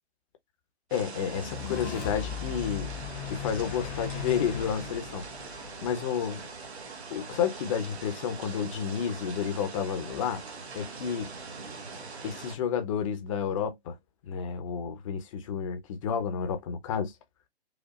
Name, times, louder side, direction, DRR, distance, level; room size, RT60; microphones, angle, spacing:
voice 1, 0.9-2.9 3.3-6.5 7.1-10.4 10.7-11.3 12.2-14.0 14.3-17.1, left 7 dB, 30° left, 0.9 m, -31 dB
sound 1, 0.9-12.6, right 4 dB, 75° right, 1.3 m, -42 dB
sound 2, 1.3-6.6, left 9 dB, 10° left, 0.4 m, -38 dB
5.1 x 2.3 x 2.5 m
figure-of-eight pair, 135°, 33 cm